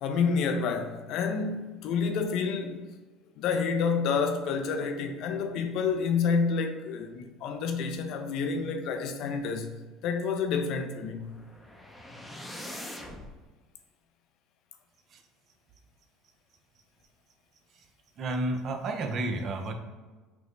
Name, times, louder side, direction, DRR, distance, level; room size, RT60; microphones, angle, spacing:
voice 1, 0.0-2.8 3.4-9.7 10.0-11.3, left 5 dB, 65° left, 0.5 m, -29 dB
sound 1, 11.1-13.3, left 1 dB, 10° left, 0.6 m, -43 dB
voice 2, 18.2-19.7, right 2 dB, 50° right, 0.6 m, -31 dB
6.0 x 2.0 x 3.2 m
hypercardioid pair, 80°, 0 cm